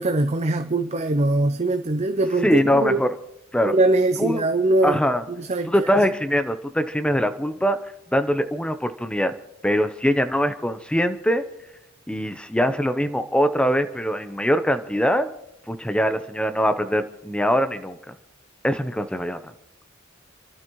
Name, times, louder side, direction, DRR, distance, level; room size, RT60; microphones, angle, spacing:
voice 1, 0.0-3.0 3.7-5.0 5.4-5.9, right 2 dB, 35° right, 0.6 m, -22 dB
voice 2, 2.4-3.1 3.5-3.7 4.2-4.5 4.8-5.2 5.7-7.8 8.1-9.3 9.6-11.4 12.1-15.3 15.7-18.1 18.6-19.4, equal, 5° left, 0.7 m, -22 dB
29.5 x 12.0 x 3.1 m
head